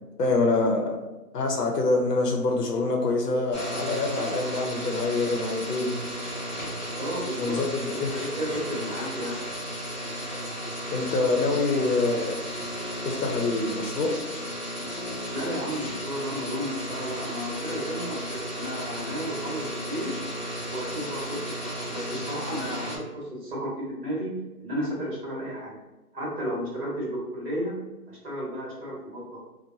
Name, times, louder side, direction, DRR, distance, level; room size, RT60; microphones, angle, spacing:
voice 1, 0.2-1.0 1.3-6.0 7.4-7.7 8.0-8.1 10.9-12.4 13.0-14.1, left 3 dB, 80° left, 2 dB, 0.7 m, -25 dB
sound 1, 3.5-23.0, equal, 30° left, 0.6 m, -34 dB
voice 2, 7.0-7.6 7.9-9.4 15.3-20.2 20.7-25.8 26.1-29.4, equal, 40° right, -5 dB, 1.3 m, -33 dB
3.0 x 2.1 x 2.6 m, 1.1 s
figure-of-eight pair, 150°, 47 cm